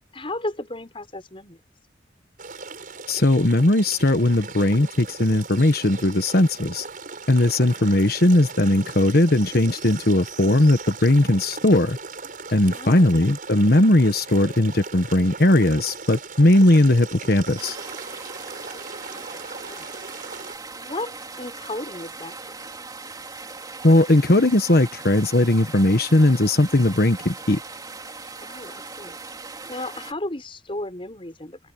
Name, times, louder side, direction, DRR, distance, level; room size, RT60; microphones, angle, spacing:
voice 1, 0.1-1.6 7.6-7.9 12.7-13.1 18.6-18.8 19.1-19.9 20.8-22.6 28.4-29.2 29.7-31.6, left 1 dB, 30° left, 6.1 m, -35 dB
sound 1, 2.4-20.6, right 4 dB, 50° right, 6.0 m, -38 dB
voice 2, 3.1-6.8 7.3-12.0 12.5-17.8 23.8-27.6, left 1 dB, 55° left, 1.3 m, -18 dB
sound 2, 17.6-30.1, right 3 dB, 20° right, 3.6 m, -39 dB
head